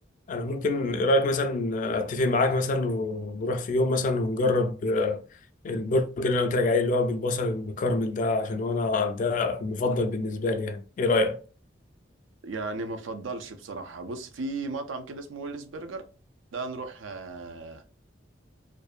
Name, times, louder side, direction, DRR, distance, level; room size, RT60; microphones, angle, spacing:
voice 1, 0.3-5.2 5.6-11.4, left 2 dB, 45° left, 0.3 m, -26 dB
voice 2, 12.4-16.0 16.5-17.8, right 3 dB, 85° right, 0.4 m, -35 dB
2.5 x 2.1 x 2.3 m
head